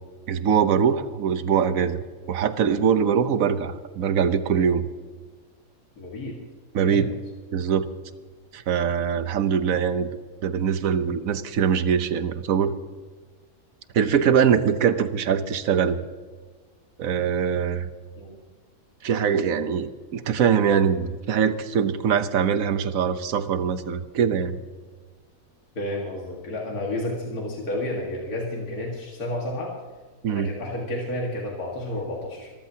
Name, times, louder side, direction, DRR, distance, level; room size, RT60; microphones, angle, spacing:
voice 1, 0.3-4.8 6.7-7.1 7.5-7.9 8.5-10.1 10.4-12.7 13.9-16.0 17.0-17.9 19.0-24.6 30.2-30.5, right 7 dB, 65° right, 11 dB, 1.2 m, -23 dB
voice 2, 6.0-6.4 6.8-7.1 18.2-18.4 25.7-29.7 30.3-32.5, left 1 dB, 75° left, -2 dB, 2.4 m, -31 dB
25.0 x 14.0 x 2.8 m, 1.4 s
omnidirectional pair, 1.6 m